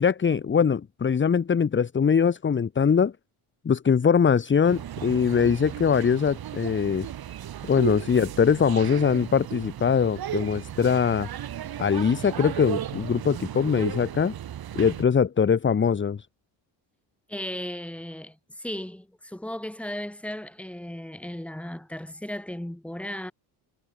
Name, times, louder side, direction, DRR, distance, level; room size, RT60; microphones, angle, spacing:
voice 1, 0.0-3.1 3.6-7.1 7.7-11.3 11.8-14.3 14.7-16.2, left 6 dB, 25° left, 1.7 m, -22 dB
sound 1, 4.6-15.0, right 11 dB, 45° right, 4.9 m, -35 dB
voice 2, 17.3-23.3, left 1 dB, 5° left, 3.8 m, -36 dB
cardioid pair, 160°, 49 cm